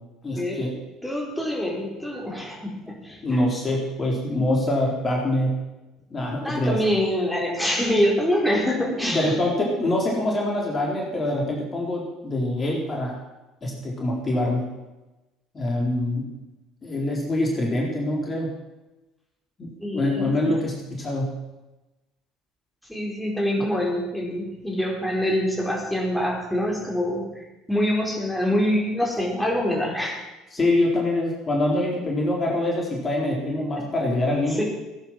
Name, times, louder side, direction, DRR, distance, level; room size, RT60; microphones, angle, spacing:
voice 1, 0.2-0.8 3.2-5.6 6.1-6.8 9.0-13.2 13.6-14.7 15.5-16.3 16.8-18.5 19.6-21.3 30.5-34.6, left 1 dB, 30° left, -2 dB, 4.1 m, -25 dB
voice 2, 1.0-3.2 6.4-9.3 19.8-20.5 22.9-27.3 27.7-30.2 34.6-34.7, equal, 5° left, -3 dB, 4.6 m, -25 dB
17.0 x 9.8 x 6.2 m, 1.0 s
figure-of-eight pair, 60°, 0 cm